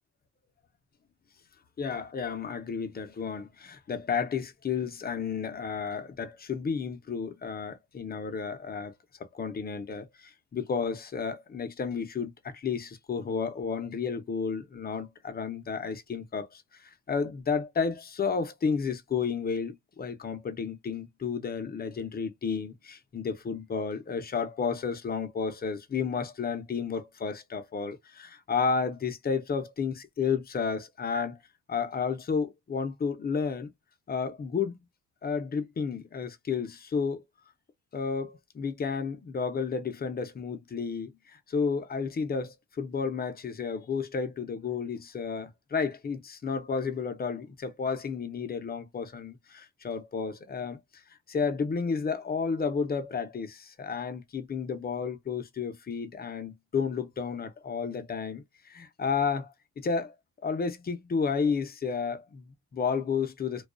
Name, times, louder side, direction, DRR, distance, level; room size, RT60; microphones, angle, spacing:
voice 1, 1.8-8.9 9.3-31.4 31.7-33.7 34.1-34.8 35.2-37.2 37.9-50.8 51.3-60.1 60.4-63.7, left 5 dB, 30° left, 0.6 m, -32 dB
2.3 x 2.3 x 2.3 m
cardioid pair, 90°, 30 cm